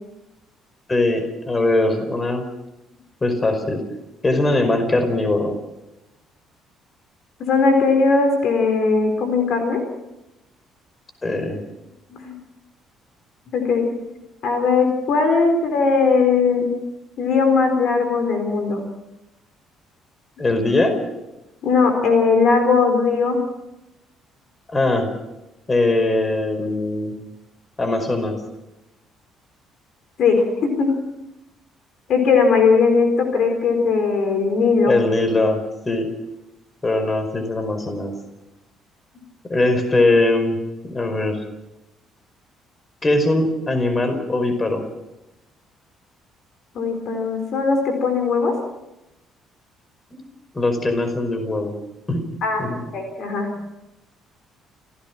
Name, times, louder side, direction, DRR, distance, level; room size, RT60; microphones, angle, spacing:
voice 1, 0.9-2.4 3.2-3.8 4.2-5.5 11.2-11.6 20.4-21.0 24.7-25.1 25.7-27.2 27.8-28.4 34.9-36.1 36.8-38.1 39.5-40.6 40.9-41.4 43.0-44.8 50.1-50.2 50.5-51.8 52.1-52.2 52.6-52.8, left 2 dB, 25° left, 7 dB, 5.1 m, -21 dB
voice 2, 7.4-9.8 12.1-12.3 13.5-13.9 14.4-16.7 17.2-18.8 21.6-23.4 30.2-30.9 32.1-34.9 46.7-48.5 52.4-52.6 52.9-53.5, left 4 dB, 55° left, 5 dB, 4.3 m, -19 dB
29.0 x 16.0 x 6.1 m, 0.95 s
figure-of-eight pair, 45°, 0 cm